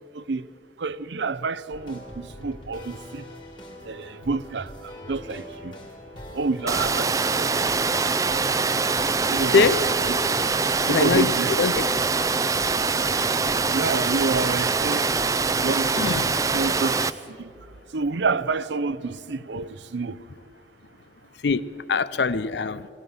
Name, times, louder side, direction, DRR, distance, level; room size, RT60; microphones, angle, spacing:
voice 1, 0.1-0.4 0.8-3.2 3.8-5.8 6.3-7.5 9.3-9.6 10.9-11.5 13.7-15.1 15.6-16.2 16.5-17.5 17.9-20.2, right 4 dB, 90° right, 0.6 m, -28 dB
sound 1, 1.7-16.7, equal, 25° left, 2.7 m, -42 dB
Water, 6.7-17.1, right 4 dB, 20° right, 0.4 m, -24 dB
voice 2, 9.5-9.9 10.8-12.0 15.9-16.3 21.3-22.9, left 4 dB, 80° left, 0.6 m, -23 dB
21.5 x 18.0 x 7.0 m
head